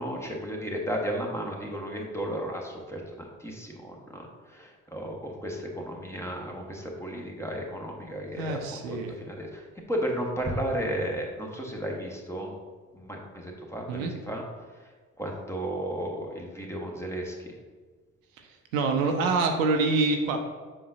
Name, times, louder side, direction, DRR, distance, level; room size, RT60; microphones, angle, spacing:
voice 1, 0.0-12.5 12.9-14.4 15.2-17.5, equal, 5° left, 0 dB, 1.3 m, -34 dB
voice 2, 8.3-9.1 13.9-14.1 18.7-20.4, right 3 dB, 75° right, 4 dB, 0.8 m, -25 dB
7.5 x 5.2 x 2.7 m, 1.4 s
figure-of-eight pair, 45°, 41 cm